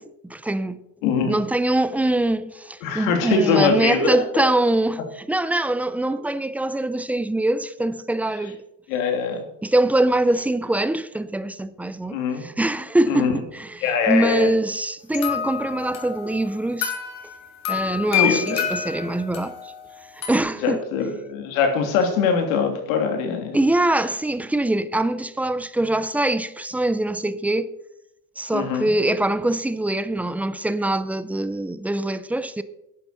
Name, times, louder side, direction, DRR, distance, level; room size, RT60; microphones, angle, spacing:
voice 1, 0.0-0.8 1.3-8.6 9.6-16.9 17.7-19.7 20.3-20.8 23.5-27.7 28.4-32.6, right 1 dB, 5° right, 0.4 m, -23 dB
voice 2, 1.0-1.4 2.8-4.2 8.9-9.4 12.1-12.4 13.1-13.4 13.8-14.5 18.1-18.7 20.6-23.6 28.5-28.9, left 5 dB, 85° left, 3.2 m, -22 dB
sound 1, 15.1-20.4, left 9 dB, 45° left, 3.6 m, -28 dB
11.0 x 9.2 x 6.8 m
cardioid pair, 140°, 40 cm